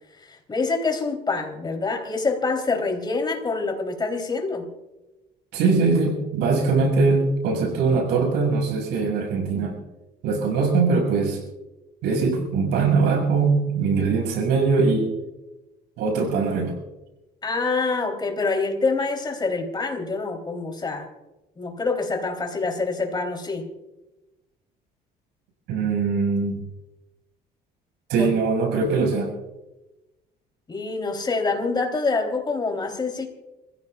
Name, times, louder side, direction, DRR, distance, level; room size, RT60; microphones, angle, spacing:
voice 1, 0.2-4.7 17.4-21.1 21.6-23.7 28.2-28.3 30.7-33.3, left 3 dB, 25° left, 3 dB, 3.5 m, -26 dB
voice 2, 5.5-9.8 10.2-11.4 12.0-15.1 16.0-16.8 25.7-26.6 28.1-29.3, right 4 dB, 85° right, 1 dB, 6.5 m, -21 dB
28.0 x 16.0 x 2.4 m, 1.0 s
cardioid pair, 110°, 17 cm